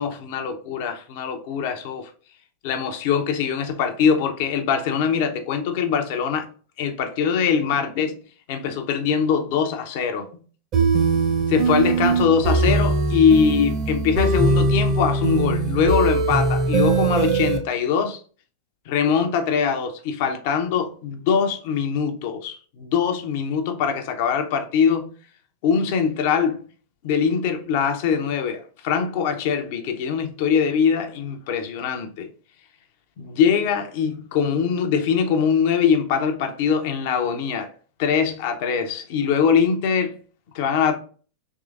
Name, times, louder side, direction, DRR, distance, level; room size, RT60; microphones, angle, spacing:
voice 1, 0.0-2.1 2.6-6.5 6.8-8.2 8.5-10.3 11.5-18.2 18.9-25.1 25.6-26.6 27.0-32.3 33.2-37.7 38.0-40.2 40.5-41.0, left 6 dB, 50° left, 0.6 m, -22 dB
sound 1, 10.7-17.6, right 3 dB, 35° right, 0.8 m, -21 dB
3.6 x 3.1 x 2.4 m
figure-of-eight pair, 90°, 0 cm